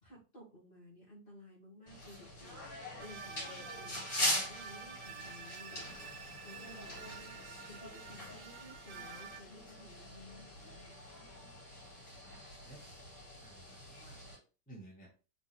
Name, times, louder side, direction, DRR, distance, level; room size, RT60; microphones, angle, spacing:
voice 1, 0.0-6.0 6.4-7.3 7.7-11.0, left 1 dB, 35° left, -6 dB, 2.5 m, -55 dB
sound 1, 1.9-14.4, left 1 dB, 60° left, 3.3 m, -42 dB
sound 2, 3.0-9.4, right 6 dB, 90° right, 1.3 m, -49 dB
voice 2, 6.0-6.4 11.5-11.9 12.6-13.0 13.4-14.2 14.7-15.1, right 1 dB, 5° left, -5 dB, 1.2 m, -56 dB
5.0 x 3.0 x 3.3 m, 0.34 s
omnidirectional pair, 1.9 m